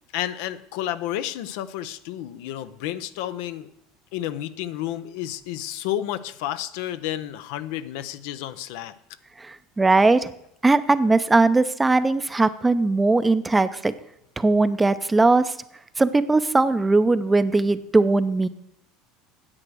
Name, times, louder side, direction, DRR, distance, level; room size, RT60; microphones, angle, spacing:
voice 1, 0.1-3.7 4.1-8.9, left 12 dB, 70° left, 12 dB, 0.6 m, -31 dB
voice 2, 9.4-10.3 10.6-13.9 14.4-15.5 16.0-18.5, right 3 dB, 15° right, 13 dB, 0.6 m, -19 dB
9.8 x 7.8 x 6.2 m, 0.75 s
supercardioid pair, 100°, 0 cm